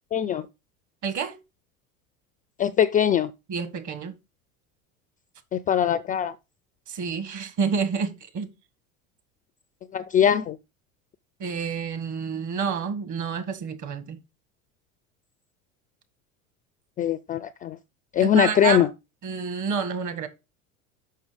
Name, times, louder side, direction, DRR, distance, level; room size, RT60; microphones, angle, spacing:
voice 1, 0.1-0.5 2.6-3.3 5.5-6.3 9.9-10.6 17.0-17.8 18.1-18.9, left 9 dB, 20° left, 0.3 m, -22 dB
voice 2, 1.0-1.4 3.5-4.1 6.9-8.5 11.4-14.2 18.2-18.9 19.2-20.3, right 6 dB, 45° right, 1.7 m, -29 dB
6.5 x 5.6 x 5.0 m
hypercardioid pair, 85°, 41 cm